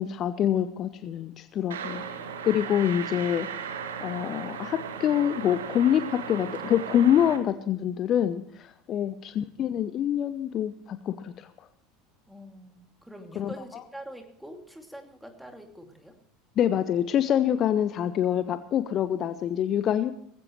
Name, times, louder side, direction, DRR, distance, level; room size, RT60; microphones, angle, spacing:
voice 1, 0.0-2.0 2.4-3.5 4.0-11.7 13.4-13.5 16.6-20.1, left 10 dB, 40° left, 13 dB, 0.7 m, -26 dB
sound 1, 1.7-7.4, right 6 dB, 70° right, 1.5 m, -36 dB
voice 2, 12.3-16.2, equal, ahead, 4 dB, 2.6 m, -45 dB
18.5 x 15.5 x 3.2 m, 0.69 s
figure-of-eight pair, 70°, 0 cm